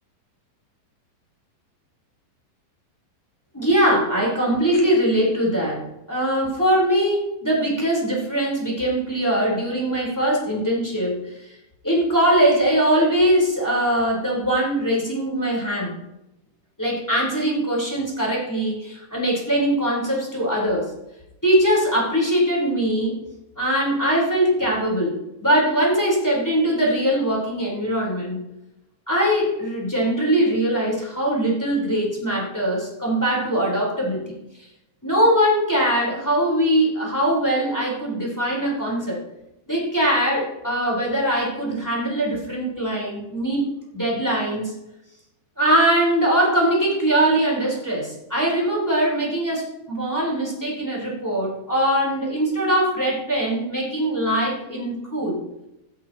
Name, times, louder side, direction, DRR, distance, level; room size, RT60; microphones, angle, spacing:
voice 1, 3.5-11.5 11.8-15.9 16.8-20.9 21.4-23.2 23.6-28.4 29.1-34.4 35.0-39.2 39.7-43.7 43.9-44.7 45.6-55.4, right 1 dB, 5° left, -4 dB, 3.2 m, -21 dB
16.0 x 11.0 x 2.9 m, 0.90 s
omnidirectional pair, 5.2 m